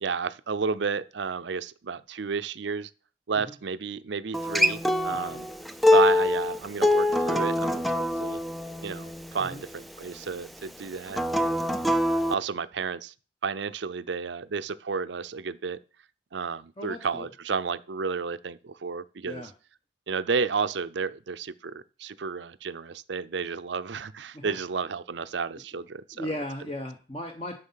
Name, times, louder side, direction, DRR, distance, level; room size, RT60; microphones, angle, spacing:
voice 1, 0.0-2.9 3.3-5.5 5.9-8.4 8.8-11.9 12.3-13.1 13.4-15.8 16.3-19.4 20.1-26.3, right 5 dB, 70° right, 0.6 m, -32 dB
Acoustic guitar, 4.3-9.5 11.1-12.3, left 1 dB, ahead, 0.4 m, -24 dB
voice 2, 16.8-17.3 19.2-19.5 24.3-24.6 26.1-27.6, left 1 dB, 30° left, 1.0 m, -36 dB
9.9 x 6.7 x 5.7 m
head